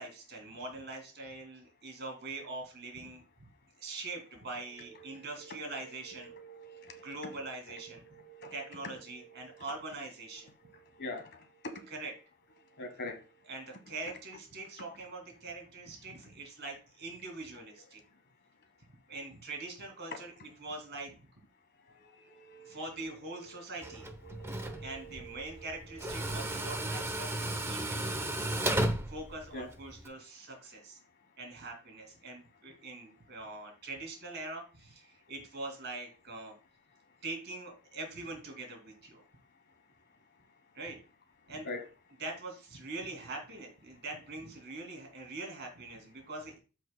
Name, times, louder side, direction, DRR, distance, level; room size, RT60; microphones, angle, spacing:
voice 1, 0.0-3.2 3.8-6.3 7.0-8.0 8.5-10.5 11.9-12.1 13.5-18.0 19.1-20.3 20.6-21.1 22.6-24.1 24.8-28.6 29.1-31.0 31.4-36.5 37.2-39.2 40.7-41.0 41.5-41.7 42.2-46.6, right 2 dB, 50° right, 2.6 m, -43 dB
voice 2, 4.8-9.6 10.4-11.9 12.6-13.5 17.8-17.9 20.1-20.2 21.8-23.5 23.8-27.1 29.5-29.7 41.6-41.9, left 1 dB, 50° left, 1.4 m, -47 dB
Tools, 23.8-30.1, right 1 dB, 10° right, 0.8 m, -35 dB
14.0 x 4.7 x 2.2 m
head